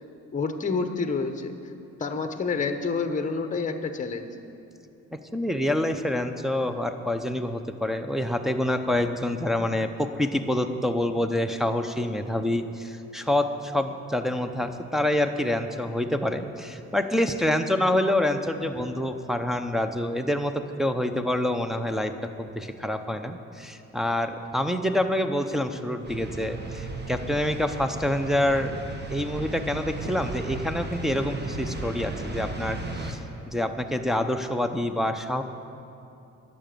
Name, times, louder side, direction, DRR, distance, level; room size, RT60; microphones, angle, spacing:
voice 1, 0.3-1.5 2.0-4.3, left 4 dB, 25° left, 7 dB, 0.9 m, -28 dB
voice 2, 5.1-22.1 22.4-28.7 29.1-33.2 33.5-35.4, left 1 dB, ahead, 4 dB, 0.8 m, -27 dB
sound 1, 26.0-33.1, right 2 dB, 35° right, 1.5 m, -35 dB
12.0 x 7.0 x 9.1 m, 2.7 s
cardioid pair, 90°, 30 cm